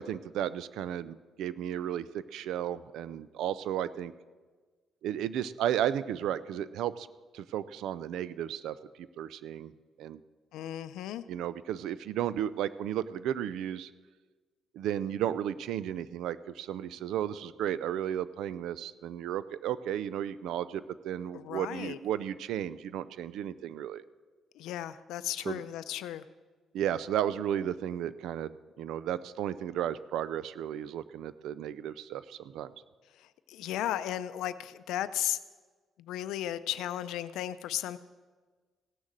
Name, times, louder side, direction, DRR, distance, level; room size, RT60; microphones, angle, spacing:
voice 1, 0.0-4.1 5.0-7.1 7.3-9.7 10.0-10.2 11.3-13.9 14.7-24.0 25.5-25.6 26.7-32.7, right 10 dB, 85° right, 16 dB, 0.4 m, -34 dB
voice 2, 10.5-11.2 21.3-22.0 24.5-26.2 33.1-35.4 36.0-38.0, left 12 dB, 90° left, 13 dB, 0.5 m, -35 dB
16.5 x 6.5 x 7.4 m, 1.4 s
cardioid pair, 90°, 0 cm